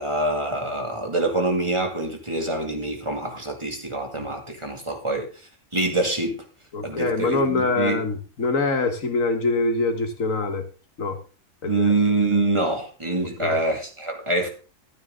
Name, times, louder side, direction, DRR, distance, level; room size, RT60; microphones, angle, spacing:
voice 1, 0.0-6.4 6.8-8.0 11.7-14.5, right 2 dB, 20° right, 2.3 m, -25 dB
voice 2, 6.7-10.6 11.0-11.2 11.6-11.9 13.4-13.6, left 3 dB, 80° left, 1.9 m, -24 dB
12.5 x 9.4 x 3.7 m
omnidirectional pair, 1.4 m